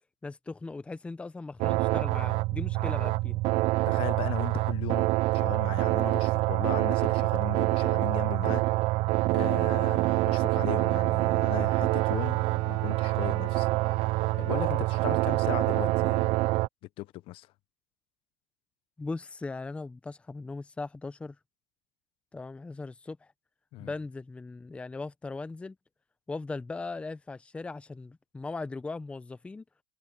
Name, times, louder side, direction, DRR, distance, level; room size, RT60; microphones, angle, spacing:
voice 1, 0.2-3.3 19.0-21.4 22.3-23.3 23.8-25.8 26.3-29.6, left 3 dB, 10° left, 0.8 m, -38 dB
sound 1, 1.6-16.7, right 20 dB, 50° right, 0.6 m, -26 dB
voice 2, 3.9-8.6 9.3-13.7 14.0-14.1 14.3-16.4 17.0-17.5 23.7-23.9, left 17 dB, 45° left, 0.9 m, -37 dB
supercardioid pair, 130°, 12 cm